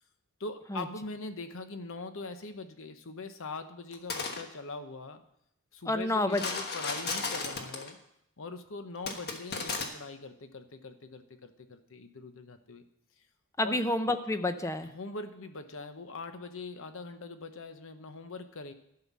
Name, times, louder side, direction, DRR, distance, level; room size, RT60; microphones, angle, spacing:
voice 1, 0.4-5.2 5.7-8.0 8.4-12.8 13.6-13.8 14.9-18.7, left 3 dB, 65° left, 9 dB, 0.9 m, -42 dB
sound 1, 3.9-4.4 6.3-7.9 9.1-9.9, left 4 dB, 45° left, 1.3 m, -34 dB
voice 2, 5.9-6.4 13.6-14.9, left 2 dB, 15° left, 10 dB, 0.5 m, -29 dB
11.5 x 5.8 x 7.3 m, 0.77 s
head